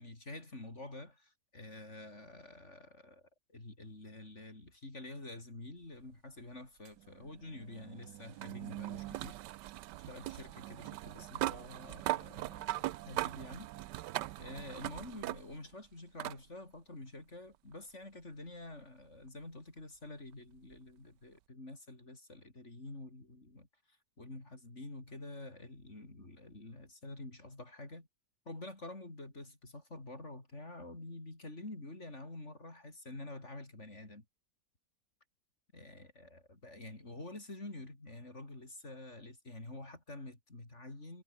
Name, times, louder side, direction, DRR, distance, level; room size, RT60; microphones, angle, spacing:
voice 1, 0.0-9.4 10.0-13.7 14.4-28.1 28.5-34.3 35.7-41.2, left 2 dB, 40° left, 5.1 m, -48 dB
sound 1, 6.8-15.7 16.2-16.4 17.7-17.8 20.7-20.8, right 15 dB, 85° right, 1.2 m, -40 dB
omnidirectional pair, 1.9 m